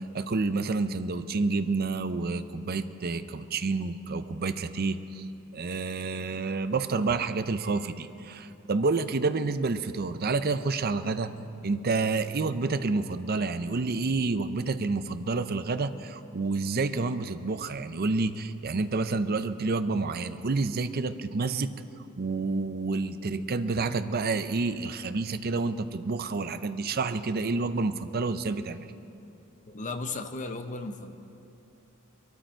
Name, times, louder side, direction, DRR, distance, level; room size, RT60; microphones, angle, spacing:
voice 1, 0.0-5.2 5.5-11.3 11.6-21.7 22.2-28.8, right 3 dB, 45° right, 11 dB, 0.6 m, -29 dB
voice 2, 29.7-31.1, left 3 dB, 35° left, 7 dB, 0.8 m, -35 dB
23.0 x 13.0 x 4.5 m, 2.9 s
head